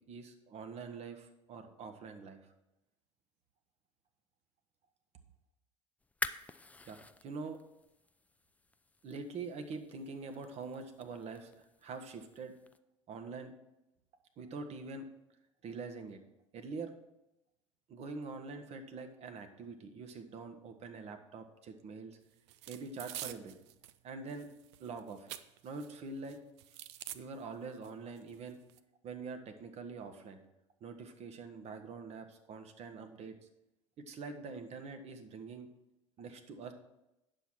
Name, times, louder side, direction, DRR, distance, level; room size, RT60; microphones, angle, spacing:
voice 1, 0.0-2.4 6.8-7.6 9.0-12.5 13.1-13.5 14.4-15.1 15.6-16.2 16.5-16.9 17.9-22.2 22.7-23.5 24.0-24.5 24.8-25.3 25.6-26.4 27.1-28.6 29.0-30.4 30.8-33.3 34.1-35.7 36.2-36.7, right 4 dB, 45° right, 6 dB, 1.1 m, -44 dB
sound 1, 6.0-12.8, left 3 dB, 10° left, 0.4 m, -47 dB
sound 2, 22.5-24.0 24.3-25.9 26.2-27.2 27.8-27.9 28.2-28.8, right 13 dB, 65° right, 0.5 m, -47 dB
9.2 x 7.0 x 4.5 m, 0.91 s
figure-of-eight pair, 70°, 16 cm